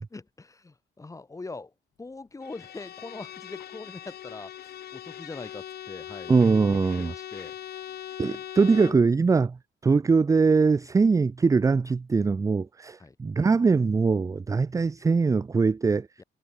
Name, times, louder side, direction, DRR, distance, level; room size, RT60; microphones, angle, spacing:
voice 1, 0.1-1.7 2.0-6.4 7.0-7.6 13.0-13.2 16.2-16.3, left 3 dB, 15° left, 7.2 m, -42 dB
Bowed string instrument, 2.4-9.1, left 11 dB, 50° left, 0.9 m, -41 dB
voice 2, 6.3-7.1 8.2-9.6 9.8-16.1, right 4 dB, 15° right, 0.5 m, -22 dB
cardioid pair, 165°, 20 cm